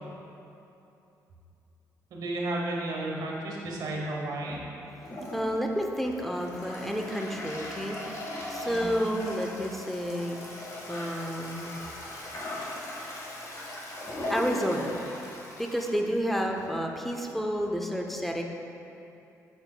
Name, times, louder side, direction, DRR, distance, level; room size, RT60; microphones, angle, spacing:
voice 1, 2.1-4.6 8.7-9.0, right 2 dB, 75° right, -2 dB, 1.3 m, -33 dB
Toilet flush, 5.0-16.8, left 1 dB, 50° left, 1.4 m, -39 dB
voice 2, 5.3-10.4 10.9-11.9 14.3-15.0 15.6-18.4, equal, ahead, 1 dB, 0.6 m, -30 dB
8.6 x 7.0 x 2.2 m, 2.8 s
cardioid pair, 105°, 7 cm